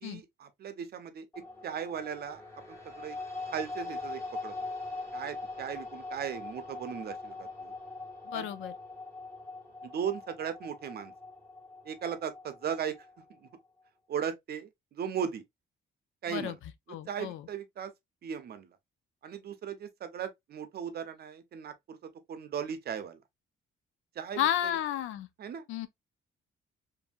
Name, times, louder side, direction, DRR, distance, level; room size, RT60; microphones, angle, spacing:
voice 1, 0.0-2.4 2.7-3.2 3.5-4.5 5.1-7.7 8.3-8.5 9.8-11.1 11.8-13.0 13.3-13.5 14.1-15.4 16.2-16.6 17.1-17.9 18.2-18.8 19.2-23.2 24.2-24.8 25.4-25.7, right 8 dB, 50° right, 0.6 m, -37 dB
sound 1, 1.3-13.6, left 3 dB, 15° left, 1.4 m, -42 dB
voice 2, 8.2-8.7 16.3-16.6 16.9-17.5 24.4-25.3 25.7-25.9, left 11 dB, 80° left, 0.4 m, -32 dB
2.6 x 2.6 x 2.3 m
cardioid pair, 90°, 20 cm